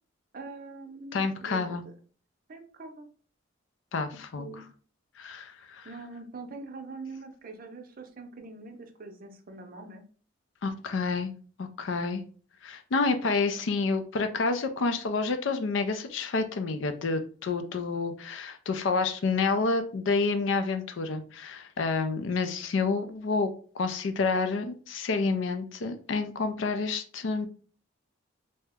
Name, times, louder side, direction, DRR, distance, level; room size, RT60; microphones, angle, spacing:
voice 1, 0.3-1.9 2.5-3.1 4.4-4.7 5.8-10.0, right 3 dB, 45° right, 5 dB, 0.5 m, -43 dB
voice 2, 1.1-1.8 3.9-4.5 5.2-5.9 10.6-11.3 11.6-12.2 12.6-27.5, left 4 dB, 65° left, 8 dB, 0.4 m, -29 dB
2.8 x 2.1 x 3.5 m, 0.42 s
head